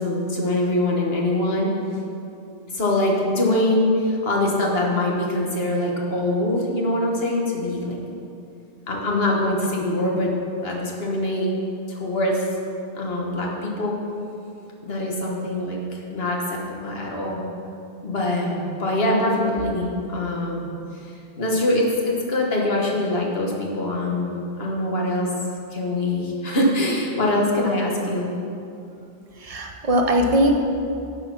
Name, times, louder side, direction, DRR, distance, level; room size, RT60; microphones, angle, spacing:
voice 1, 0.0-1.7 2.7-8.0 8.9-10.3 10.6-11.5 11.9-12.4 12.9-14.0 14.8-15.8 16.1-17.4 18.0-20.7 21.4-25.3 25.7-28.3, left 1 dB, 70° left, -2 dB, 1.6 m, -23 dB
voice 2, 29.4-30.6, equal, 40° right, 2 dB, 0.8 m, -20 dB
10.5 x 4.8 x 5.9 m, 2.6 s
omnidirectional pair, 1.1 m